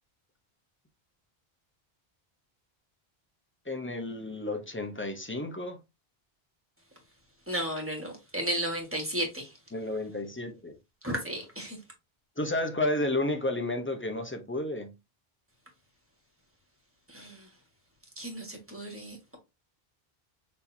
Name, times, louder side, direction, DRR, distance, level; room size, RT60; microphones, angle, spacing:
voice 1, 3.7-5.8 9.7-10.8 12.4-14.9, left 2 dB, 15° left, 0.7 m, -31 dB
voice 2, 7.5-9.6 11.0-11.8 17.1-17.5 18.2-19.4, right 1 dB, 15° right, 1.5 m, -34 dB
6.3 x 3.0 x 2.7 m
omnidirectional pair, 1.0 m